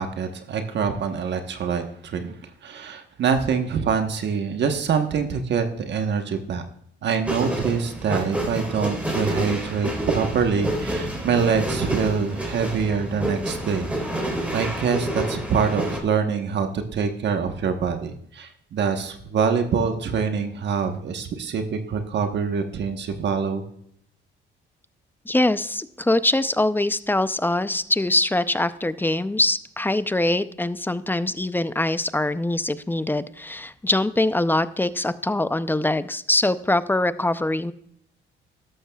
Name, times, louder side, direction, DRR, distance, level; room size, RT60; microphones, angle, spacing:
voice 1, 0.0-2.3 2.6-6.6 7.0-23.6, right 6 dB, 60° right, 6 dB, 1.2 m, -25 dB
sound 1, 7.2-16.0, right 1 dB, 5° right, 3.6 m, -28 dB
voice 2, 25.3-37.7, left 2 dB, 10° left, 14 dB, 0.5 m, -23 dB
13.0 x 12.0 x 2.3 m, 0.69 s
cardioid pair, 90°, 20 cm